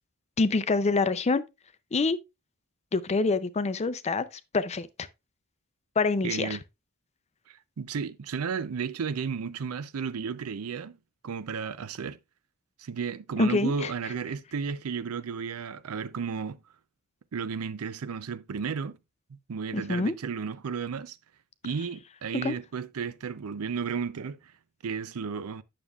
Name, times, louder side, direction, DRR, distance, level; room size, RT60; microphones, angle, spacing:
voice 1, 0.4-1.4 1.9-2.2 2.9-4.3 4.5-4.9 6.0-6.5 13.4-13.9 19.7-20.1 22.4-22.5, left 3 dB, 30° left, 0.5 m, -25 dB
voice 2, 6.2-6.6 7.5-11.0 11.2-12.2 12.8-16.6 17.3-19.0 19.3-21.2 21.6-24.5 24.8-25.6, right 6 dB, 90° right, 0.5 m, -33 dB
9.0 x 6.7 x 2.3 m
head